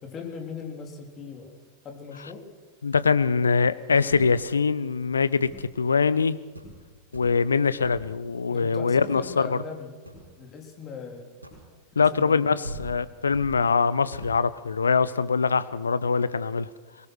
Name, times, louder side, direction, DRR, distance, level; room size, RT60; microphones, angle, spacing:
voice 1, 0.0-1.6 1.8-2.4 8.5-9.9 10.4-11.3 11.9-12.6, left 5 dB, 30° left, 2 dB, 3.5 m, -39 dB
voice 2, 2.8-6.4 7.1-9.6 12.0-16.7, left 5 dB, 75° left, 16 dB, 0.7 m, -23 dB
sound 1, 4.1-4.6 5.4-5.8 6.2-6.3 6.5-6.9 7.1-7.5 7.8-8.2 8.8-9.5 10.0-10.3 11.4-11.8 12.4-12.5 12.6-13.6 14.1-14.4, equal, 85° right, 4.7 m, -42 dB
22.5 x 19.0 x 6.3 m, 1.3 s
figure-of-eight pair, 90°, 0 cm